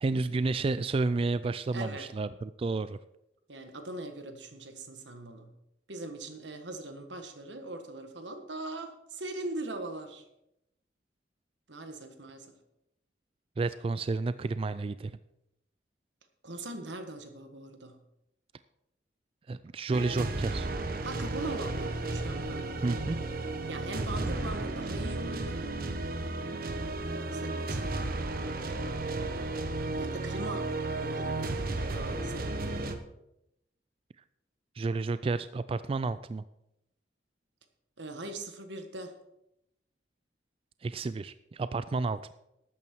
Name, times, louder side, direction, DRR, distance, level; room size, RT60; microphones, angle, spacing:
voice 1, 0.0-3.0 13.6-15.2 19.5-20.7 22.8-23.2 34.8-36.4 40.8-42.3, right 3 dB, 30° right, 14 dB, 0.3 m, -31 dB
voice 2, 1.7-2.1 3.5-5.5 5.9-10.2 11.7-12.5 16.4-18.0 21.0-22.8 23.7-25.6 27.2-28.1 30.0-30.7 31.0-31.6 31.9-32.8 38.0-39.1, right 2 dB, 85° right, 6 dB, 1.5 m, -41 dB
sound 1, 19.9-32.9, right 2 dB, 55° right, 1.0 m, -33 dB
12.5 x 8.9 x 4.5 m, 0.84 s
head